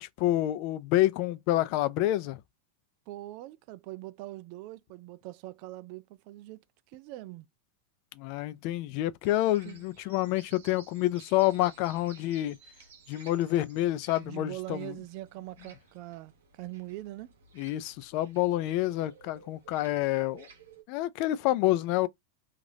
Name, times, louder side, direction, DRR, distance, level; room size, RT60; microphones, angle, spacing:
voice 1, 0.0-2.4 8.2-12.6 13.1-15.0 17.6-20.5 20.9-22.1, left 15 dB, 55° left, 0.4 m, -28 dB
voice 2, 3.1-6.6 6.9-7.5 9.6-9.8 14.2-17.3, right 17 dB, 55° right, 0.3 m, -42 dB
sound 1, 9.2-20.8, right 5 dB, 75° right, 0.8 m, -56 dB
3.2 x 2.4 x 2.6 m
hypercardioid pair, 105°, 0 cm